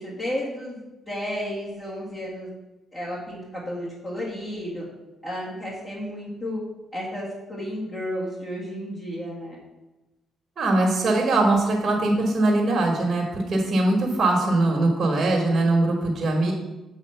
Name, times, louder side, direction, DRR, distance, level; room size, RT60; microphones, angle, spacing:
voice 1, 0.0-2.5 2.9-4.8 5.2-6.6 6.9-9.6, equal, 30° left, -8 dB, 2.0 m, -32 dB
voice 2, 10.6-16.5, right 2 dB, 45° right, -1 dB, 1.4 m, -21 dB
7.7 x 3.1 x 5.6 m, 1.0 s
cardioid pair, 90°, 0 cm